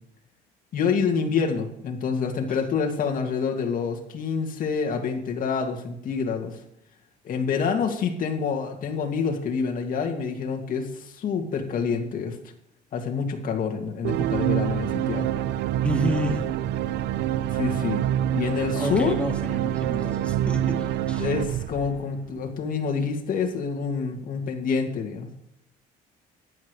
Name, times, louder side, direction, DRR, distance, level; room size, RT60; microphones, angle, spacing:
voice 1, 0.7-6.6 7.2-12.4 12.9-15.3 17.5-18.0 18.3-19.1 21.2-25.3, left 5 dB, 55° left, 2 dB, 2.3 m, -27 dB
sound 1, 14.0-22.5, right 11 dB, 85° right, 0.6 m, -26 dB
voice 2, 15.8-16.4 18.8-21.3, left 1 dB, 5° left, 2 dB, 2.2 m, -30 dB
14.5 x 11.0 x 3.3 m, 0.78 s
cardioid pair, 110°, 17 cm